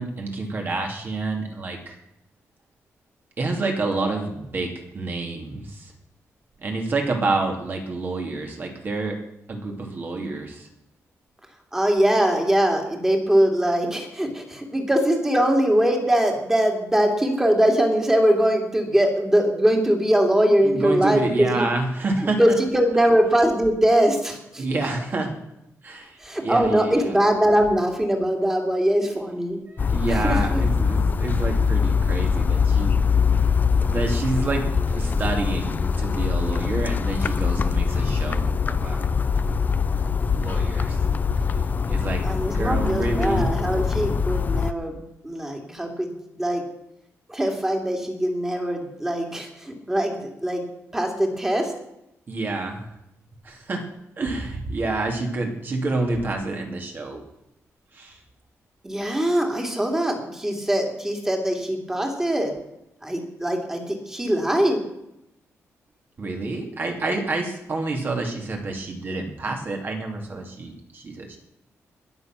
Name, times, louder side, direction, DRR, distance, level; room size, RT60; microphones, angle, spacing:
voice 1, 0.0-2.0 3.4-5.9 6.6-9.2 9.5-10.7 20.6-22.6 24.6-25.3 25.8-27.2 29.7-33.0 33.9-39.1 40.3-41.0 41.3-41.6 41.9-43.5 52.3-52.9 53.4-53.8 54.2-57.2 57.9-58.2 66.2-71.4, right 3 dB, 40° right, 2 dB, 2.7 m, -28 dB
voice 2, 11.7-21.7 22.4-24.6 26.2-29.6 30.1-30.6 42.2-45.0 45.2-46.6 47.3-50.6 50.9-51.7 58.8-62.5 63.0-64.8, equal, 10° right, 2 dB, 2.7 m, -22 dB
sound 1, 29.8-44.7, left 5 dB, 35° left, 0.6 m, -23 dB
21.0 x 7.2 x 6.1 m, 0.83 s
wide cardioid pair, 150°, 5 cm